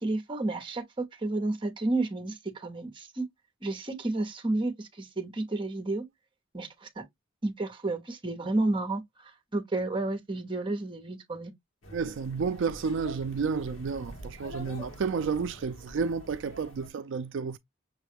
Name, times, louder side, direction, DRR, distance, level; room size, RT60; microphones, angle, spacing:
voice 1, 0.0-3.3 3.6-6.1 6.5-7.0 7.4-11.5, right 2 dB, 25° right, 0.9 m, -31 dB
sound 1, 11.8-16.9, equal, 70° left, 1.5 m, -46 dB
voice 2, 11.9-17.6, right 5 dB, 65° right, 0.4 m, -31 dB
6.4 x 2.3 x 3.4 m
head